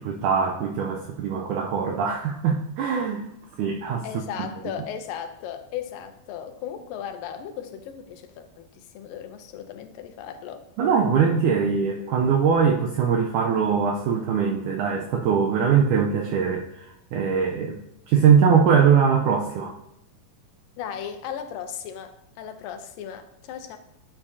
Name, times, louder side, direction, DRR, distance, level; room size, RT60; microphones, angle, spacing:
voice 1, 0.0-3.2 3.6-4.1 10.8-17.8 18.1-19.7, right 6 dB, 80° right, 2 dB, 1.8 m, -22 dB
voice 2, 4.0-10.7 20.8-23.8, left 8 dB, 80° left, 7 dB, 2.3 m, -36 dB
11.5 x 7.1 x 2.7 m, 0.79 s
omnidirectional pair, 4.2 m